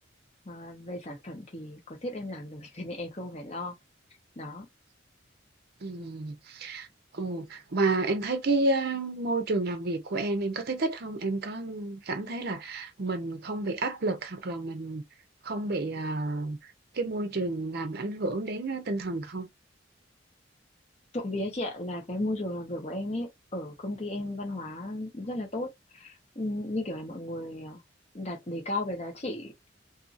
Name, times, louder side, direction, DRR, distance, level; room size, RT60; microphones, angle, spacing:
voice 1, 0.5-3.7 4.4-4.7 21.1-27.8 28.1-29.5, left 1 dB, 35° left, 1.0 m, -35 dB
voice 2, 5.8-6.9 7.1-15.0 15.4-16.6 16.9-19.5, right 2 dB, 55° right, 0.6 m, -30 dB
2.7 x 2.6 x 2.5 m
head